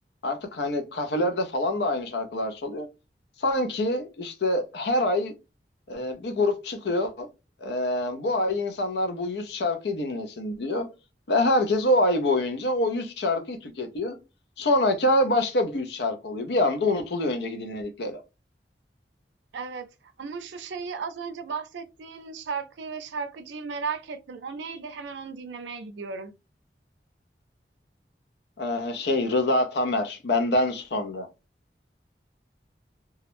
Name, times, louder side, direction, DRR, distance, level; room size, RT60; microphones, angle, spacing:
voice 1, 0.2-2.9 3.4-5.3 5.9-7.3 7.6-10.9 11.3-14.2 14.6-18.2 28.6-31.3, left 1 dB, 70° left, 0.6 m, -26 dB
voice 2, 19.5-19.9 20.2-26.3, right 5 dB, 90° right, 0.4 m, -35 dB
2.3 x 2.0 x 2.9 m
head